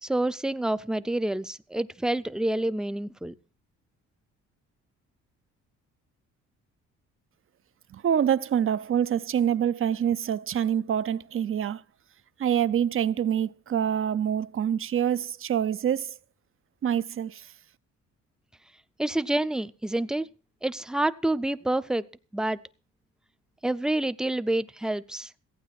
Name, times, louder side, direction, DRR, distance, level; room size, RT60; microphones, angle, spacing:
voice 1, 0.0-3.3 19.0-20.3 20.6-22.1 22.3-22.6 23.6-25.3, right 1 dB, ahead, 0.6 m, -28 dB
voice 2, 7.9-11.8 12.4-16.2 16.8-17.5, right 9 dB, 45° right, 0.7 m, -26 dB
15.0 x 9.1 x 5.9 m
cardioid pair, 90°, 30 cm